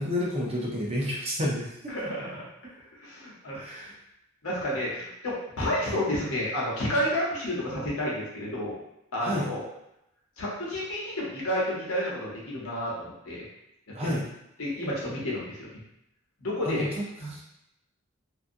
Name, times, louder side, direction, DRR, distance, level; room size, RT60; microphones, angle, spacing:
voice 1, 0.0-1.9 3.5-3.9 9.2-9.5 13.9-14.3 16.6-17.0 17.3-17.4, left 1 dB, 30° right, -4 dB, 0.5 m, -30 dB
voice 2, 1.9-2.4 3.0-3.9 4.4-8.7 9.1-9.6 10.4-13.4 14.0-14.1 14.6-15.8 16.4-16.9 17.2-17.4, left 1 dB, 75° left, -5 dB, 0.9 m, -30 dB
2.6 x 2.3 x 2.5 m, 0.84 s
head